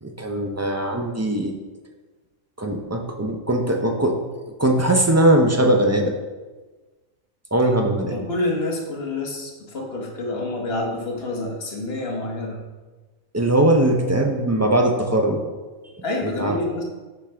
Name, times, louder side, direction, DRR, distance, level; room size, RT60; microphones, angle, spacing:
voice 1, 0.0-1.5 2.6-4.1 4.6-6.1 7.5-8.2 13.3-15.4 16.2-16.6, right 1 dB, 25° right, 2 dB, 0.3 m, -20 dB
voice 2, 8.1-12.6 16.0-16.8, left 2 dB, 45° left, 0 dB, 1.4 m, -28 dB
8.4 x 6.0 x 3.5 m, 1.3 s
omnidirectional pair, 1.4 m